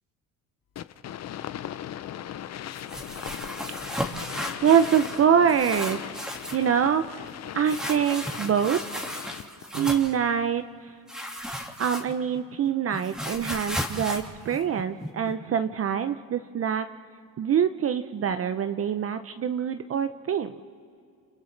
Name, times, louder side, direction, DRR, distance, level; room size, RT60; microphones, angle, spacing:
sound 1, 0.8-9.7, left 11 dB, 50° left, 0.7 m, -39 dB
sound 2, 2.7-5.2 5.5-6.7 7.7-10.2 11.1-12.4 12.7-15.3, equal, ahead, 2.0 m, -34 dB
voice 1, 4.6-7.3 7.5-8.8 9.7-10.9 11.8-16.9 17.4-20.6, right 8 dB, 40° right, 9 dB, 0.7 m, -25 dB
30.0 x 27.5 x 3.3 m, 2.4 s
supercardioid pair, 85°, 35 cm